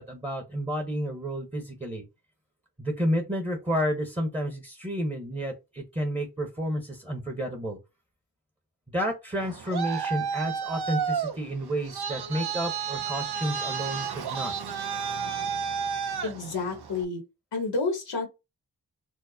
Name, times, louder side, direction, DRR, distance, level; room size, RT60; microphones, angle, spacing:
voice 1, 0.0-2.0 2.8-7.8 8.9-14.5, equal, 15° right, 1.0 m, -31 dB
Traffic noise roadway noise, 9.3-17.0, right 7 dB, 70° right, 0.6 m, -32 dB
voice 2, 16.2-17.2 17.5-18.3, left 3 dB, 90° left, 1.1 m, -29 dB
4.5 x 2.1 x 2.7 m
cardioid pair, 50°, 41 cm